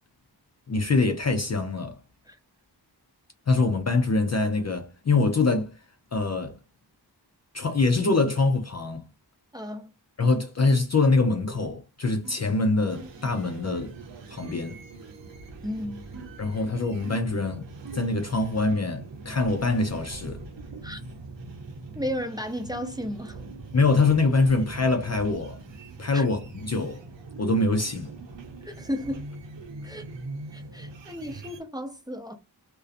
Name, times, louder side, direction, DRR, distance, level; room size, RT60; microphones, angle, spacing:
voice 1, 0.7-2.0 3.5-5.8 6.1-6.6 7.5-9.0 10.2-13.9 14.3-14.8 16.4-17.7 17.9-20.4 23.7-25.6 26.0-27.0 27.4-28.1, left 3 dB, 40° left, 0.4 m, -24 dB
voice 2, 9.5-9.9 15.6-16.0 20.8-21.0 21.9-23.4 26.1-26.3 28.6-29.3 29.8-30.0 30.5-32.3, equal, 10° right, 0.6 m, -34 dB
sound 1, 12.2-12.5 12.9-13.3 13.7-13.9 14.4-14.7 16.1-16.5 17.0-17.4 17.8-18.2 18.7-19.0, right 3 dB, 50° right, 0.5 m, -45 dB
sound 2, 12.9-31.6, right 3 dB, 90° right, 0.7 m, -42 dB
2.5 x 2.2 x 2.4 m
wide cardioid pair, 85°, 43 cm